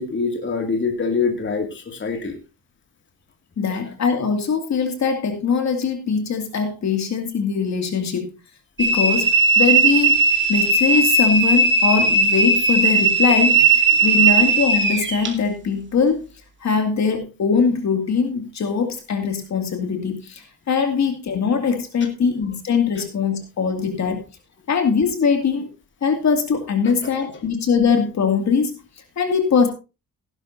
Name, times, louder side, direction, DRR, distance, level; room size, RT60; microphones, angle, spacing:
voice 1, 0.0-2.4 13.9-14.1 27.0-27.1, left 4 dB, 30° left, 3 dB, 2.4 m, -24 dB
voice 2, 3.6-8.3 8.8-16.2 16.6-24.2 24.7-25.7 26.0-28.8 29.2-29.7, left 5 dB, 50° left, 5 dB, 2.5 m, -21 dB
sound 1, 8.8-15.3, right 3 dB, 30° right, 2.5 m, -17 dB
16.5 x 11.5 x 2.7 m, 0.29 s
cardioid pair, 150°, 36 cm